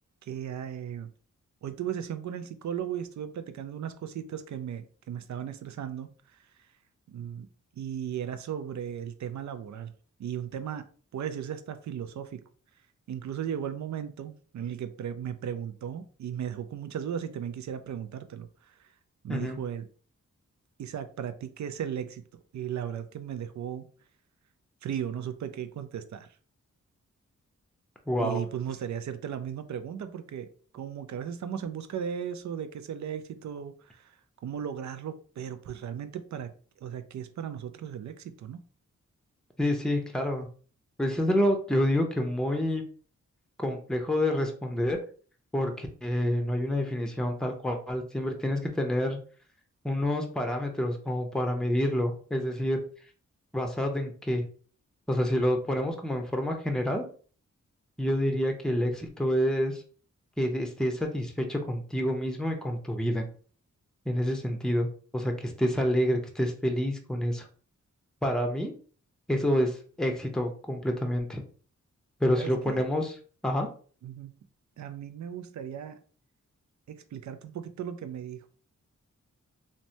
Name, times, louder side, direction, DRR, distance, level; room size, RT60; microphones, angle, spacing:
voice 1, 0.2-1.1 1.6-6.7 7.1-7.5 7.7-9.9 10.2-10.9 11.1-12.4 13.1-18.9 19.2-19.9 20.8-22.2 22.5-23.9 24.8-26.3 28.2-34.2 34.4-36.5 36.8-38.6 72.4-72.8 74.0-74.3 74.8-76.0 76.9-78.5, right 9 dB, 65° right, 10 dB, 0.4 m, -36 dB
voice 2, 28.1-28.4 39.6-40.5 41.0-42.8 43.6-45.0 45.5-49.2 49.8-52.8 53.5-54.4 55.1-57.0 58.0-59.8 60.4-63.3 64.1-67.5 68.2-68.7 69.3-71.4 72.2-73.1 73.4-73.7, equal, ahead, 4 dB, 0.6 m, -28 dB
3.1 x 2.1 x 2.6 m, 0.41 s
cardioid pair, 50°, 31 cm